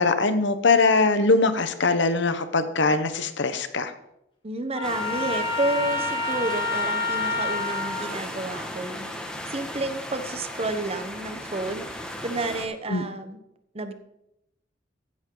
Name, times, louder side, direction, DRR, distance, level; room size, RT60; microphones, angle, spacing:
voice 1, 0.0-3.9 12.9-13.0, left 3 dB, 65° left, 10 dB, 1.0 m, -22 dB
voice 2, 4.4-9.1 9.5-13.4 13.7-13.9, right 2 dB, 30° right, 9 dB, 1.0 m, -30 dB
Trumpet, 4.7-8.1, left 3 dB, 25° left, 2.5 m, -28 dB
sound 1, 4.8-12.6, left 1 dB, 5° left, 1.7 m, -36 dB
15.0 x 10.5 x 3.9 m, 0.83 s
head